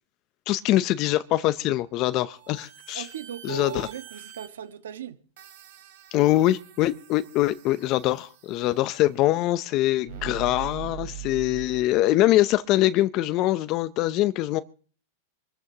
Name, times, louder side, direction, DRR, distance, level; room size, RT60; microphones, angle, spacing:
voice 1, 0.5-3.0 3.4-3.9 6.1-14.6, left 15 dB, 40° left, 0.6 m, -23 dB
sound 1, 2.3-4.5 5.4-8.7 10.1-12.0, right 12 dB, 65° right, 3.1 m, -42 dB
voice 2, 2.9-5.2 8.7-8.8, right 8 dB, 90° right, 1.4 m, -38 dB
26.0 x 13.5 x 2.9 m
supercardioid pair, 135°, 0 cm